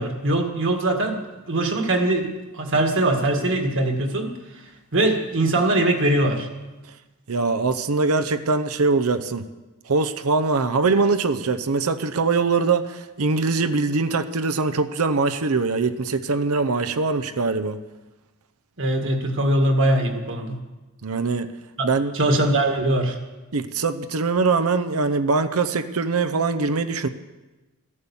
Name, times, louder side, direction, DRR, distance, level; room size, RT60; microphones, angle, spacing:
voice 1, 0.0-4.3 4.9-6.5 18.8-20.6 21.8-21.9 22.1-23.1, right 1 dB, 60° right, 4 dB, 1.9 m, -22 dB
voice 2, 7.3-9.4 9.9-17.8 21.0-21.5 21.8-22.1 23.5-27.1, right 4 dB, 75° right, 10 dB, 0.7 m, -22 dB
14.5 x 11.0 x 7.2 m, 1.1 s
head